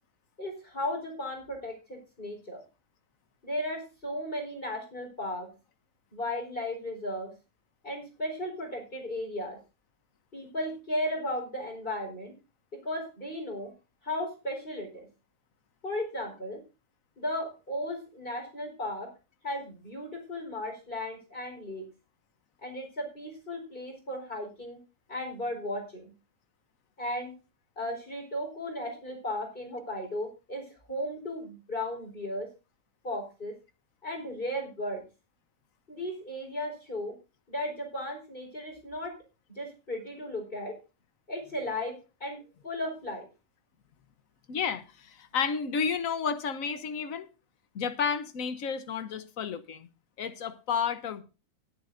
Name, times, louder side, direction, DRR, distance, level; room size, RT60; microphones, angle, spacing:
voice 1, 0.4-2.6 3.4-5.5 6.1-7.3 7.8-9.6 10.3-12.3 12.8-13.7 14.0-15.1 15.8-16.6 17.2-19.1 19.4-21.8 22.6-24.8 25.1-26.1 27.0-27.3 27.8-32.5 33.0-33.5 34.0-35.0 35.9-37.1 37.5-39.2 39.5-40.8 41.3-43.3, left 1 dB, 35° left, 4.7 m, -35 dB
voice 2, 44.5-47.3 47.7-49.9 50.2-51.2, left 6 dB, 60° left, 1.4 m, -31 dB
20.0 x 8.7 x 2.6 m
omnidirectional pair, 1.6 m